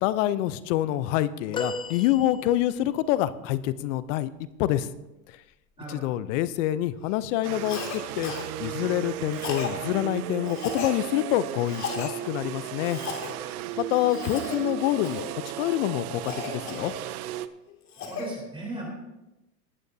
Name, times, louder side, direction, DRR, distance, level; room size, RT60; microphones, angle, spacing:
voice 1, 0.0-4.3 4.6-4.9 5.3-5.4 5.9-8.3 8.6-13.0 13.8-15.2 15.6-16.9, left 14 dB, 50° left, 16 dB, 0.7 m, -26 dB
sound 1, 1.5-3.0 5.3-5.5 6.8-6.9, left 3 dB, 10° left, 0.5 m, -35 dB
sound 2, 7.4-17.5, right 13 dB, 60° right, 0.7 m, -35 dB
Cough, 7.7-8.0 8.2-8.5 9.3-9.7 10.5-11.0 11.7-12.1 12.8-13.3 14.0-14.6 15.0-15.3 16.3-17.2 17.7-18.3, left 5 dB, 35° left, 2.4 m, -35 dB
voice 2, 18.1-18.9, right 1 dB, 10° right, -2 dB, 3.6 m, -36 dB
18.5 x 9.0 x 2.7 m, 0.96 s
hypercardioid pair, 115°, 49 cm